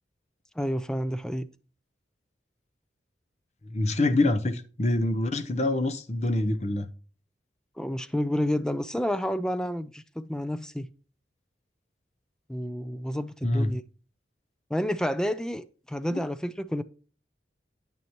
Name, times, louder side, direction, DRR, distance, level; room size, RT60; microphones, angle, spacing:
voice 1, 0.6-1.5 7.8-10.9 12.5-13.8 14.7-16.8, equal, 5° left, 0.4 m, -30 dB
voice 2, 3.7-6.9 13.4-13.7 16.1-16.2, left 2 dB, 40° left, 0.7 m, -25 dB
9.3 x 8.6 x 3.0 m
head